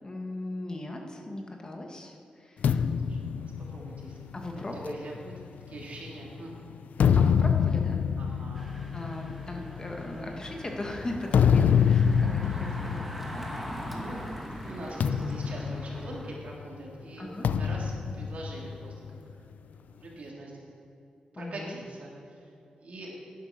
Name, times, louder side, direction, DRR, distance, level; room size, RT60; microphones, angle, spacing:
voice 1, 0.0-2.8 4.3-4.9 7.1-8.0 8.9-13.5 17.2-17.5 21.3-21.8, left 1 dB, 30° left, 2 dB, 1.4 m, -38 dB
sound 1, 2.6-6.2 6.7-14.2 14.4-14.7 15.0-16.6 17.4-19.2, left 7 dB, 85° left, 0.4 m, -26 dB
voice 2, 2.7-5.3 5.7-6.5 8.2-8.7 12.4-13.0 13.8-14.3 14.6-19.2 19.7-20.5 21.3-22.4 22.8-23.1, right 2 dB, 60° right, -3 dB, 2.9 m, -43 dB
Engine, 8.5-16.4, equal, ahead, 1.5 m, -42 dB
11.0 x 10.0 x 5.9 m, 2.7 s
wide cardioid pair, 100°, 3 cm